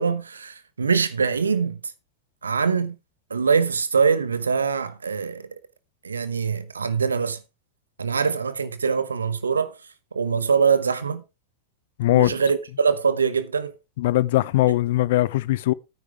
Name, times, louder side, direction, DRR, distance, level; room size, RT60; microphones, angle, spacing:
voice 1, 0.0-1.8 2.4-3.0 3.3-5.5 6.0-7.4 8.0-9.8 10.1-11.2 12.1-13.7, right 5 dB, 75° right, 0.9 m, -23 dB
voice 2, 12.0-12.4 14.0-15.7, left 16 dB, 55° left, 0.6 m, -20 dB
12.5 x 9.6 x 3.4 m
figure-of-eight pair, 90°, 0 cm